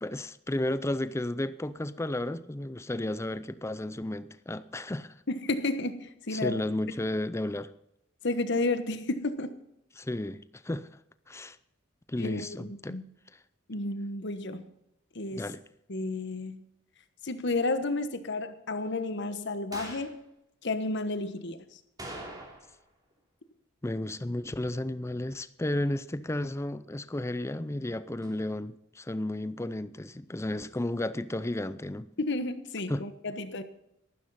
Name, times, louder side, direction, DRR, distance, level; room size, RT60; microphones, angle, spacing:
voice 1, 0.0-5.1 6.3-7.7 10.0-10.9 11.3-11.6 12.1-13.0 13.3-13.4 15.3-15.6 23.8-32.1 32.9-33.1, left 1 dB, 15° left, 0.5 m, -33 dB
voice 2, 5.3-6.5 8.2-9.5 12.2-13.0 13.7-14.7 15.1-15.5 15.9-16.6 17.2-20.1 20.6-21.6 32.2-33.6, left 2 dB, 55° left, 1.2 m, -31 dB
sound 1, 19.7-20.2 22.0-22.8 23.1-23.2 28.2-28.3, right 1 dB, 20° right, 2.9 m, -42 dB
14.0 x 13.0 x 4.1 m
head